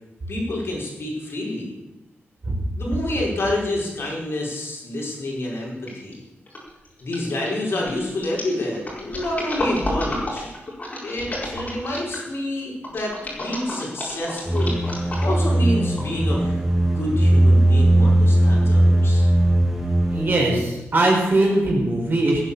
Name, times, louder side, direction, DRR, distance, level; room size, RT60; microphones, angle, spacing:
voice 1, 0.3-1.7 2.8-6.2 7.0-10.5 11.0-14.8 15.2-16.6 16.9-19.3, left 1 dB, 60° left, -3 dB, 4.9 m, -28 dB
sound 1, 5.9-6.1 6.5-12.3 12.8-15.5 16.0-16.1, left 1 dB, 35° left, 4.6 m, -31 dB
sound 2, 14.5-20.4, right 1 dB, 5° right, 2.1 m, -18 dB
voice 2, 20.1-22.5, right 2 dB, 45° right, -2 dB, 5.1 m, -20 dB
17.5 x 9.1 x 7.0 m, 1.0 s
wide cardioid pair, 155°, 5 cm